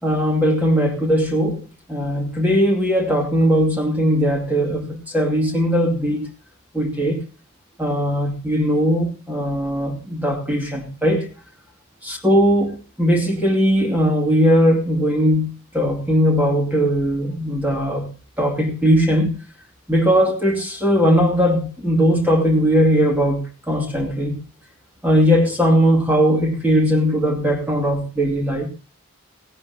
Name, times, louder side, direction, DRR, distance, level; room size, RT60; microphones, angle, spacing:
voice 1, 0.0-1.6 1.9-6.2 6.7-7.2 7.8-11.3 12.0-18.1 18.4-19.3 19.9-23.4 23.7-24.4 25.0-28.7, equal, 10° right, 2.4 m, -19 dB
17.5 x 17.0 x 2.8 m
head